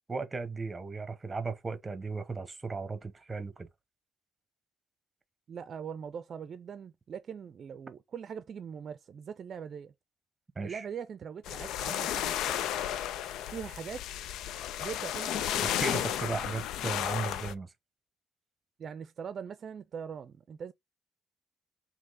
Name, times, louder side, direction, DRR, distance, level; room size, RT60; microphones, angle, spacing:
voice 1, 0.1-3.7 10.6-10.8 15.6-17.7, right 4 dB, 25° right, 1.0 m, -36 dB
voice 2, 5.5-9.9 10.6-12.7 13.5-14.1 14.8-16.3 18.8-20.7, right 7 dB, 55° right, 0.5 m, -42 dB
sound 1, 11.4-17.5, left 11 dB, 85° left, 0.3 m, -33 dB
3.6 x 2.9 x 4.0 m
cardioid pair, 90°, 0 cm